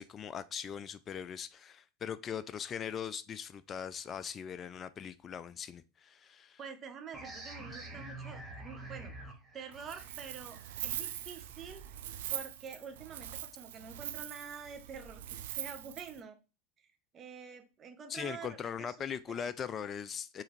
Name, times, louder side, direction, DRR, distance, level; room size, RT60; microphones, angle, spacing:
voice 1, 0.0-6.6 18.1-20.4, left 7 dB, 30° left, 0.3 m, -40 dB
voice 2, 6.6-9.1 9.5-11.8 12.3-16.4 16.8-19.0 19.3-19.5, right 6 dB, 35° right, 0.9 m, -47 dB
sound 1, 7.1-12.5, right 2 dB, 15° right, 1.3 m, -48 dB
Wind, 9.7-16.2, right 12 dB, 70° right, 0.4 m, -42 dB
4.6 x 3.3 x 3.1 m
hypercardioid pair, 85°, 0 cm